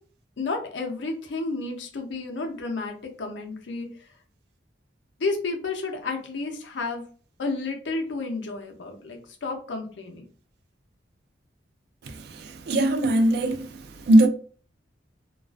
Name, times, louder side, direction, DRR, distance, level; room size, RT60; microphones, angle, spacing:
voice 1, 0.4-3.9 5.2-7.0 7.4-10.2, left 3 dB, 75° left, 0.5 m, -31 dB
voice 2, 12.1-13.7 14.0-14.3, right 1 dB, 60° right, 0.3 m, -20 dB
2.4 x 2.3 x 2.3 m
head